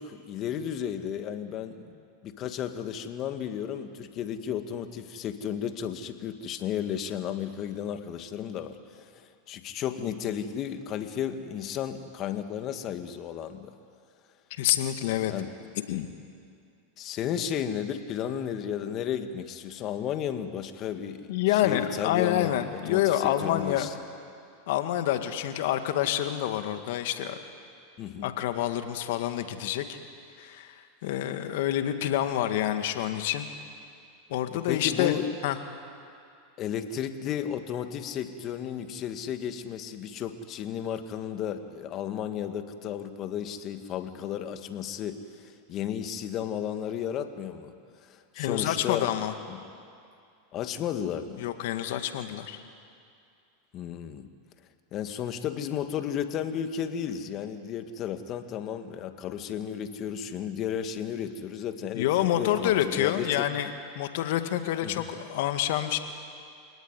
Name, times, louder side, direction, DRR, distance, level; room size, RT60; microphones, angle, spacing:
voice 1, 0.0-1.9 2.2-13.7 15.3-15.5 17.0-23.9 28.0-28.3 34.5-35.3 36.6-47.7 48.0-49.1 49.5-49.6 50.5-51.5 53.7-54.3 54.9-63.5 64.8-65.0, left 9 dB, 40° left, 8 dB, 1.9 m, -33 dB
voice 2, 14.5-15.3 15.9-16.1 21.3-23.9 24.7-27.4 28.2-30.0 30.4-30.8 31.0-33.5 34.3-35.1 35.4-35.6 48.4-49.3 51.4-52.6 61.9-63.7 64.0-66.0, left 12 dB, 70° left, 8 dB, 1.9 m, -27 dB
27.5 x 18.5 x 9.8 m, 2.4 s
hypercardioid pair, 110°, 0 cm